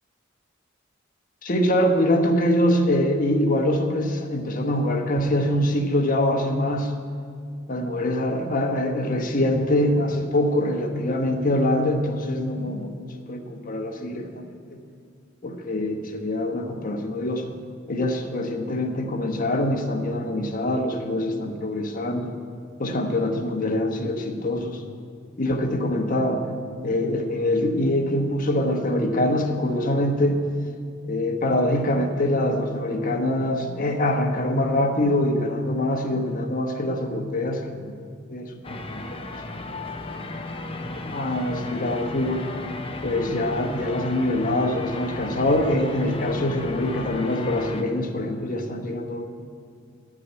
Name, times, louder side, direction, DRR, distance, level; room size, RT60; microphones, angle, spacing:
voice 1, 1.4-6.9 7.7-12.9 13.3-14.4 15.4-17.5 17.9-22.3 22.8-24.8 25.4-26.4 26.8-30.5 31.0-37.9 38.3-39.3 40.8-42.5 43.0-49.2, left 1 dB, 45° left, 3 dB, 1.2 m, -24 dB
sound 1, 38.6-47.8, left 2 dB, 30° left, 0.7 m, -35 dB
11.0 x 6.2 x 9.0 m, 2.3 s
head